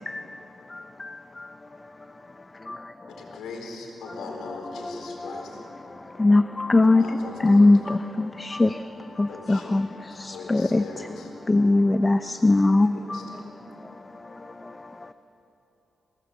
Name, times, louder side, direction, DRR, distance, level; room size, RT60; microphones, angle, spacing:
voice 1, 3.1-5.6 6.8-7.7 9.3-9.8 10.2-11.3 12.8-13.5, left 4 dB, 90° left, 1 dB, 4.3 m, -40 dB
voice 2, 6.2-7.0 7.4-8.0 8.4-8.7 9.2-9.9 10.5-10.8 11.5-12.9, left 2 dB, 25° left, 10 dB, 0.7 m, -19 dB
voice 3, 13.0-13.9 14.6-14.7, equal, 5° left, 2 dB, 2.8 m, -48 dB
24.0 x 18.0 x 8.3 m, 2.9 s
cardioid pair, 65°, 0 cm